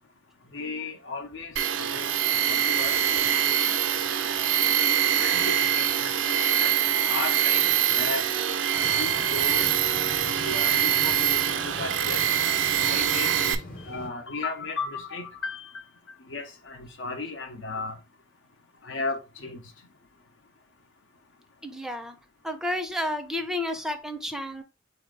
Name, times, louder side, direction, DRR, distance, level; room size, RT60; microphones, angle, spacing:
voice 1, 0.5-3.0 3.4-3.8 5.2-6.7 7.1-8.3 9.0-9.7 10.3-12.2 12.8-13.6 13.9-15.7 16.3-18.0 18.8-19.6, left 3 dB, 80° left, 0.8 m, -35 dB
Tools, 1.6-13.6, right 9 dB, 85° right, 0.5 m, -24 dB
voice 2, 4.8-5.3 21.6-22.2 22.4-24.6, left 1 dB, 5° right, 0.4 m, -32 dB
sound 1, 8.7-14.1, left 1 dB, 45° left, 0.9 m, -42 dB
4.2 x 2.8 x 3.7 m
head